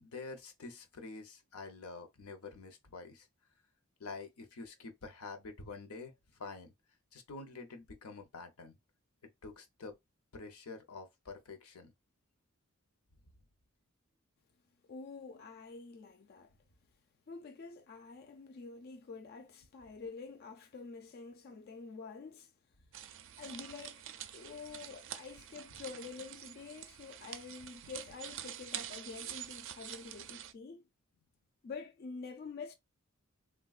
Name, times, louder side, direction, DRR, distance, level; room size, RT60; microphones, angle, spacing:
voice 1, 0.0-3.3 4.0-6.7 7.1-8.8 9.2-9.9 10.3-11.9, left 3 dB, 90° left, 0.7 m, -47 dB
voice 2, 14.8-16.5 17.3-22.5 23.4-24.1 24.3-30.9 31.6-32.7, left 4 dB, 45° left, 0.4 m, -47 dB
sound 1, 22.9-30.5, right 10 dB, 60° right, 0.4 m, -46 dB
3.4 x 2.2 x 2.3 m
head